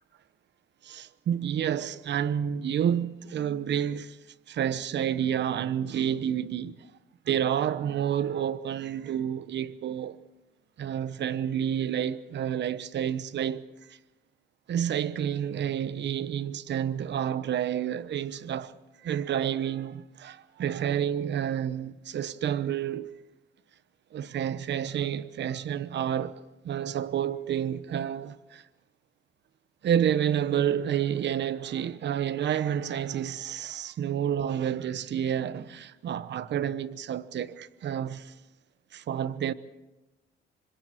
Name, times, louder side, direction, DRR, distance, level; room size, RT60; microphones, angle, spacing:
voice 1, 0.8-4.2 4.5-6.9 7.2-10.2 10.8-14.0 14.7-23.1 24.1-28.6 29.8-38.3 38.9-39.5, right 9 dB, 60° right, 1.0 m, -29 dB
28.0 x 25.5 x 4.6 m
cardioid pair, 90°, 20 cm